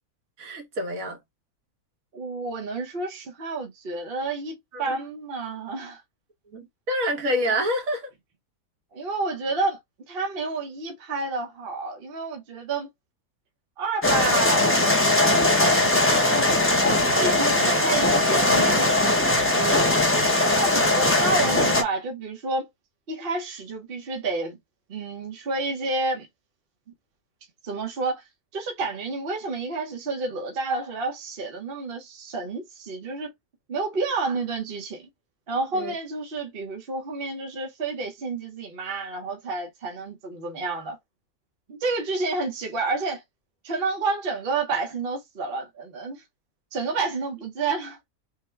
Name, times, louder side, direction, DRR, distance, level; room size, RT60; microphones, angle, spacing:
voice 1, 0.4-1.2 4.7-5.0 6.5-8.1 19.5-20.0 35.7-35.9, equal, 65° right, 1.7 m, -28 dB
voice 2, 2.1-6.0 8.9-9.8 10.1-12.9 13.8-14.7 15.5-16.5 16.8-19.0 20.5-22.7 23.1-24.6 24.9-26.3 27.6-28.2 28.5-33.3 33.7-35.1 35.5-41.0 41.7-43.2 43.6-46.2 46.7-48.0, right 3 dB, 45° right, 0.9 m, -30 dB
sound 1, 14.0-21.8, left 2 dB, 20° left, 0.4 m, -20 dB
3.7 x 2.2 x 4.3 m
omnidirectional pair, 1.6 m